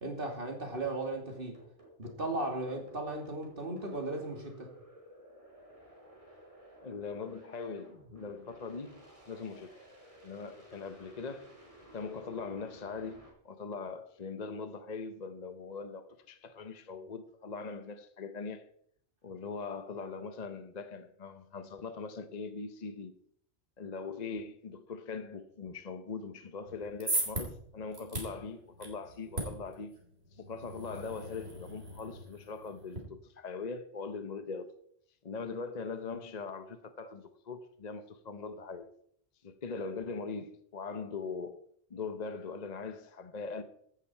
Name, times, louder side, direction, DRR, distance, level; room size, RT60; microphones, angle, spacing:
voice 1, 0.0-1.6 2.0-4.7, right 2 dB, 55° right, 3.0 m, -36 dB
sound 1, 0.7-13.3, right 1 dB, 30° right, 4.5 m, -55 dB
voice 2, 6.8-9.8 10.2-11.5 11.9-18.7 19.2-23.1 23.8-30.0 30.3-34.7 35.2-38.9 39.4-41.6 41.9-43.6, left 4 dB, 45° left, 0.9 m, -41 dB
sound 2, 26.7-33.0, right 2 dB, 75° right, 3.8 m, -39 dB
16.0 x 11.0 x 4.5 m
omnidirectional pair, 1.1 m